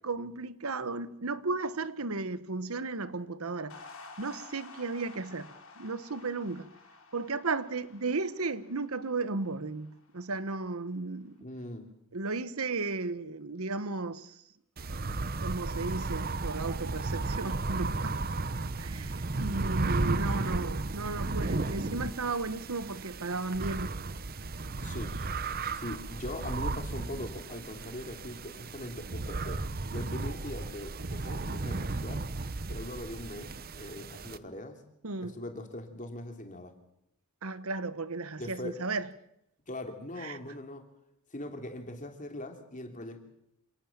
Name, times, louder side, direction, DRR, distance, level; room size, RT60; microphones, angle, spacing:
voice 1, 0.0-3.8 4.2-5.5 5.8-6.7 7.1-11.4 12.1-14.4 15.4-18.2 18.8-24.0 35.0-35.4 37.4-39.1 40.2-40.4, right 3 dB, 80° right, 1.1 m, -34 dB
sound 1, 3.7-10.2, left 3 dB, 70° left, 5.2 m, -52 dB
voice 2, 11.4-11.9 24.8-25.2 25.7-29.6 29.9-32.2 32.7-34.8 35.2-36.7 38.4-38.8 39.7-40.9 41.3-43.2, left 1 dB, 35° left, 3.1 m, -41 dB
sound 2, 14.8-34.4, right 3 dB, 45° right, 0.9 m, -34 dB
27.0 x 18.0 x 7.3 m
head